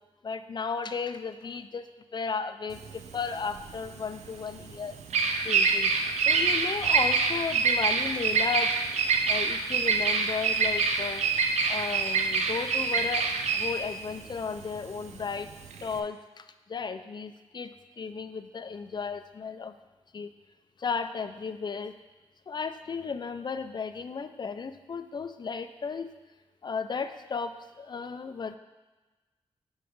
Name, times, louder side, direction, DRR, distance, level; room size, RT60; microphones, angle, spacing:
voice 1, 0.2-1.9 2.1-2.8 3.1-5.0 5.4-5.9 6.3-8.8 9.3-11.2 11.7-15.5 15.8-16.4 16.7-19.7 20.1-20.3 20.8-21.9 22.5-26.1 26.6-28.6, left 5 dB, 40° left, 10 dB, 0.4 m, -34 dB
Bird vocalization bird call bird song, 2.7-16.0, right 4 dB, 90° right, 0.5 m, -26 dB
5.1 x 4.9 x 4.6 m, 1.2 s
cardioid pair, 70°, 11 cm